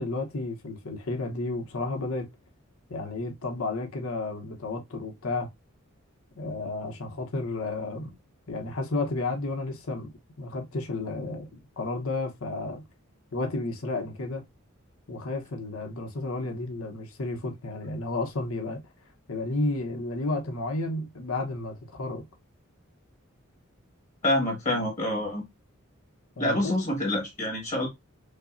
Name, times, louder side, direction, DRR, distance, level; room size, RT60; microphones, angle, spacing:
voice 1, 0.0-2.3 2.9-5.5 6.4-8.2 8.5-12.8 13.3-14.4 15.1-18.8 19.3-22.2 26.4-26.8, left 2 dB, 85° left, 0.9 m, -32 dB
voice 2, 24.2-25.4 26.4-27.9, left 1 dB, 35° left, 1.4 m, -27 dB
5.2 x 2.1 x 2.5 m
head